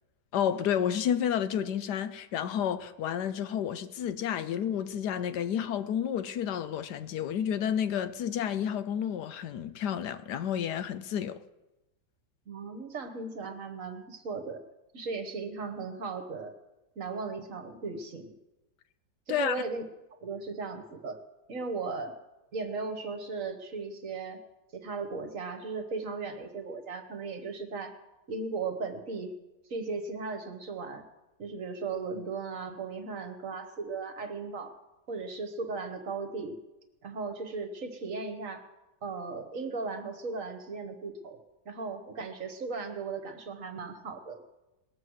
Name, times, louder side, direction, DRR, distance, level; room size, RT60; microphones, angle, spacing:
voice 1, 0.3-11.4 19.3-19.6, left 9 dB, 75° left, 1.2 m, -30 dB
voice 2, 12.5-14.6 14.9-16.5 17.0-18.4 19.3-19.8 20.2-21.2 21.5-22.2 22.5-24.4 24.7-27.9 28.3-29.3 29.7-31.0 31.4-34.7 35.1-36.6 37.0-38.6 39.0-41.4 41.6-44.4, right 4 dB, 50° right, 1.4 m, -37 dB
20.0 x 7.5 x 6.3 m
omnidirectional pair, 1.9 m